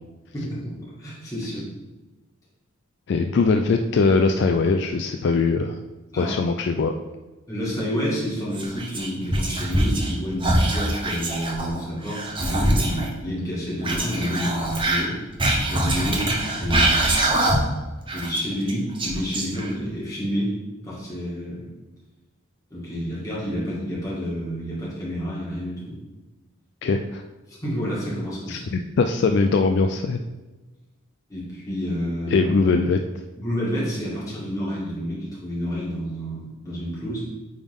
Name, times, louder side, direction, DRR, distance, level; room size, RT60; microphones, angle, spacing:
voice 1, 0.3-1.6 6.1-6.4 7.5-15.1 15.7-17.1 18.1-20.5 20.8-21.7 22.7-26.0 27.5-28.7 31.3-32.5 33.4-37.2, equal, 15° left, -8 dB, 2.1 m, -29 dB
voice 2, 3.1-5.8 6.2-6.9 26.8-27.2 28.5-30.2 32.3-33.0, left 4 dB, 50° left, 6 dB, 0.3 m, -21 dB
Whispering, 8.5-10.1 10.4-13.1 13.8-17.8 18.1-19.9, right 1 dB, 25° right, 0.9 m, -23 dB
8.8 x 3.5 x 3.7 m, 1.1 s
head